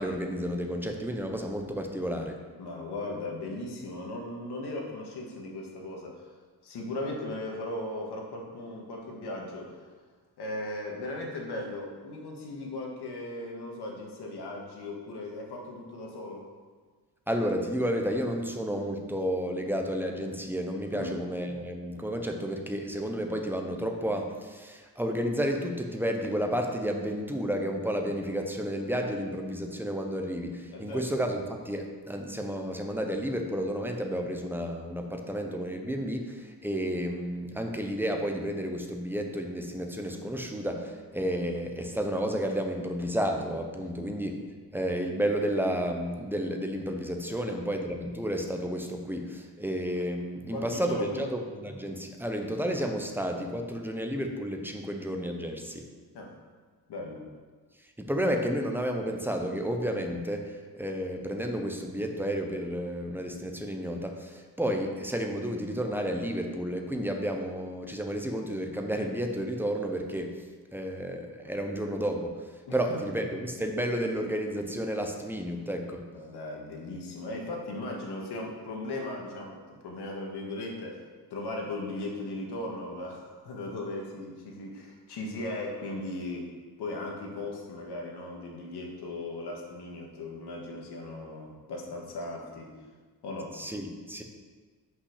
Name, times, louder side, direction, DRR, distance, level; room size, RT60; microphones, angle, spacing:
voice 1, 0.0-2.4 17.3-44.3 44.7-55.8 58.0-70.5 70.7-76.1 93.5-94.2, equal, 5° right, 3 dB, 0.7 m, -31 dB
voice 2, 2.6-6.3 6.6-9.8 10.4-16.5 20.9-21.2 30.7-31.0 43.8-44.1 47.3-47.6 50.5-51.2 56.1-56.3 56.9-57.3 72.7-73.0 76.1-81.0 81.3-86.5 86.8-92.7 93.2-93.6, left 2 dB, 75° left, 0 dB, 1.7 m, -37 dB
5.6 x 5.6 x 6.5 m, 1.5 s
cardioid pair, 135°, 41 cm